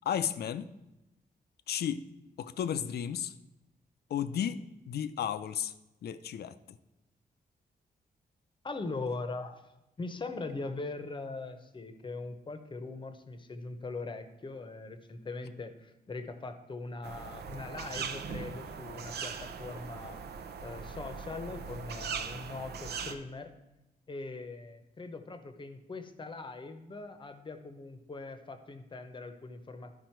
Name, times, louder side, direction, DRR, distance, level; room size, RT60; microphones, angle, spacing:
voice 1, 0.1-0.7 1.7-2.0 2.4-3.3 4.1-4.6 4.9-5.7 6.0-6.8, left 9 dB, 75° left, 12 dB, 0.5 m, -33 dB
voice 2, 8.6-9.6 10.0-20.2 20.6-23.5 24.1-29.9, left 3 dB, 30° left, 8 dB, 0.8 m, -41 dB
sound 1, 17.0-23.1, right 6 dB, 80° right, 0.7 m, -40 dB
11.5 x 5.1 x 4.5 m, 0.95 s
wide cardioid pair, 135°, 16 cm